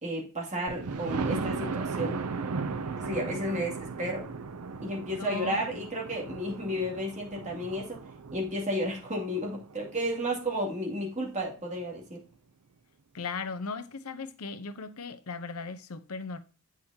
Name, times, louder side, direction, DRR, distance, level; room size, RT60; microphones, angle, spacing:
voice 1, 0.0-2.2 3.0-4.3 4.8-8.0 8.3-12.2, equal, 30° right, 2.4 m, -32 dB
Thunder, 0.7-10.4 11.0-11.1 11.5-11.6 11.8-11.9, right 4 dB, 85° right, 0.6 m, -36 dB
voice 2, 5.1-5.7 13.1-16.4, left 4 dB, 80° left, 0.8 m, -37 dB
8.0 x 6.2 x 2.8 m
head